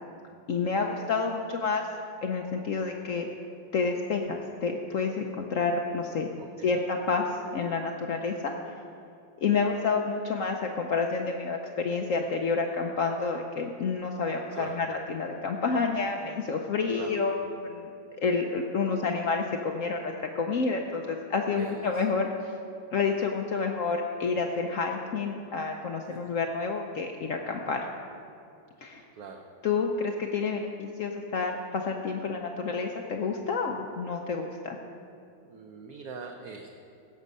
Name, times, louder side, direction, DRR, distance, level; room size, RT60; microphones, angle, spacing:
voice 1, 0.5-1.9 2.2-3.3 3.7-6.3 6.6-8.5 9.4-17.9 18.2-22.3 22.9-27.9 28.8-29.0 29.6-34.8, left 4 dB, 65° left, 3 dB, 0.8 m, -29 dB
voice 2, 6.4-6.8 14.5-14.8 16.9-17.4 21.6-22.1 26.1-26.3 29.1-29.5 35.4-36.8, right 5 dB, 60° right, 2 dB, 1.1 m, -43 dB
16.5 x 6.4 x 5.4 m, 2.5 s
omnidirectional pair, 2.1 m